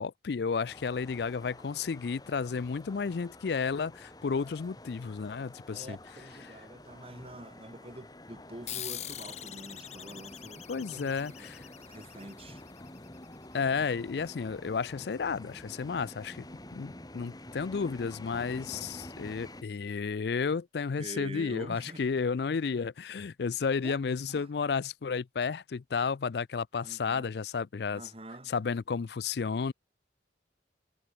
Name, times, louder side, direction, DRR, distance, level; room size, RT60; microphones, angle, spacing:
voice 1, 0.0-6.0 10.7-11.6 13.5-16.5 16.7-28.0 28.5-29.7, left 5 dB, 60° left, 0.4 m, -32 dB
sound 1, 0.7-19.6, left 1 dB, 20° left, 1.6 m, -49 dB
voice 2, 5.7-11.5 11.9-12.6 21.0-22.1 23.8-24.0 24.3-24.5 26.8-27.3 27.9-28.5, right 1 dB, 30° right, 2.4 m, -46 dB
sound 2, 8.7-13.6, left 11 dB, 35° left, 0.9 m, -44 dB
head